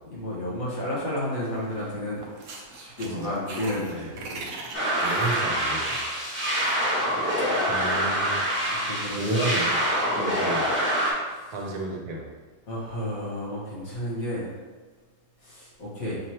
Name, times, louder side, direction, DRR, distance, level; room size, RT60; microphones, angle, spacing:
voice 1, 0.1-2.3 2.7-4.5 8.8-9.5 10.2-10.4 11.3-11.5 12.7-14.5 15.4-16.2, left 1 dB, 65° left, -7 dB, 1.9 m, -32 dB
sound 1, 1.4-1.9 2.2-6.8, right 3 dB, 60° right, 0.9 m, -39 dB
sound 2, 4.7-11.1, equal, 10° right, 1.0 m, -25 dB
voice 2, 5.0-6.0 7.7-8.4 9.2-9.8 10.4-10.7 11.5-12.2, right 2 dB, 80° right, -1 dB, 1.4 m, -31 dB
6.1 x 3.0 x 2.9 m, 1.4 s
omnidirectional pair, 1.6 m